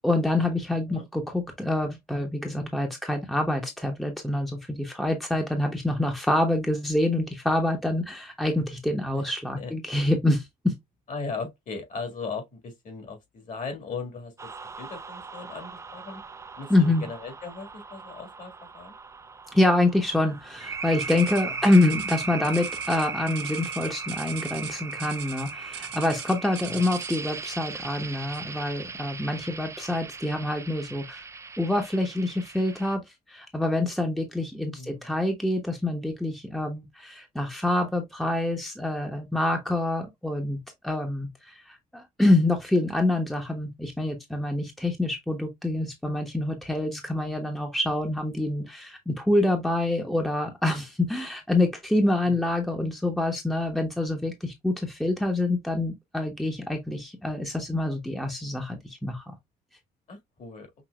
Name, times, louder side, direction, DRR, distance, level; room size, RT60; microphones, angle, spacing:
voice 1, 0.0-10.7 16.7-17.1 19.5-31.2 31.6-33.0 33.3-41.3 41.7-59.3, left 1 dB, ahead, 0.9 m, -26 dB
voice 2, 11.1-14.5 14.8-16.2 16.6-19.0 21.6-21.7 26.6-26.9 34.8-35.1 52.2-52.4 60.1-60.7, left 4 dB, 50° left, 1.9 m, -38 dB
sound 1, 14.4-32.9, right 4 dB, 15° right, 0.4 m, -38 dB
sound 2, 21.0-27.4 28.3-28.6 29.1-29.2 29.9-30.0, right 10 dB, 80° right, 1.4 m, -42 dB
5.9 x 2.7 x 2.3 m
cardioid pair, 110°, 17 cm